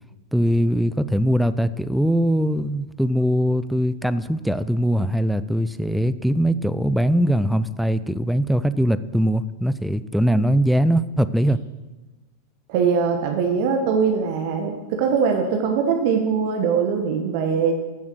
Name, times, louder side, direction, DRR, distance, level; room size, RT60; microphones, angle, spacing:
voice 1, 0.3-11.6, equal, ahead, 14 dB, 0.4 m, -21 dB
voice 2, 12.7-17.7, right 6 dB, 45° right, 4 dB, 1.2 m, -21 dB
14.5 x 7.1 x 6.3 m, 1.2 s
figure-of-eight pair, 90°, 0 cm